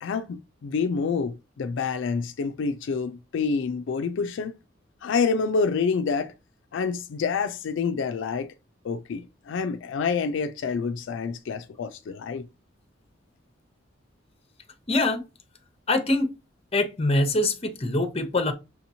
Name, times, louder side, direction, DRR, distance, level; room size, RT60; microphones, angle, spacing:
voice 1, 0.0-4.6 5.0-6.3 6.7-8.5 8.8-12.5, left 5 dB, 75° left, 0.4 m, -27 dB
voice 2, 14.9-15.2 15.9-16.3 16.7-18.5, left 2 dB, 30° left, 0.7 m, -24 dB
6.0 x 2.9 x 2.7 m
head